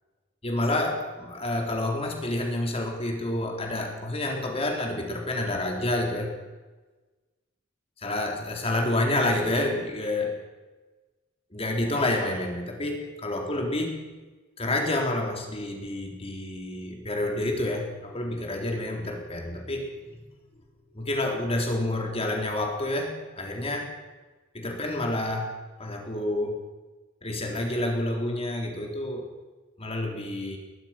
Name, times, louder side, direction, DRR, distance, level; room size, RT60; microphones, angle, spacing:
voice 1, 0.4-6.4 8.0-10.4 11.5-14.0 14.6-20.3 20.9-23.9 24.5-25.5 25.8-26.6 27.2-29.3 29.8-30.6, left 1 dB, 30° left, 2 dB, 3.8 m, -29 dB
21.5 x 21.5 x 6.0 m, 1.2 s
head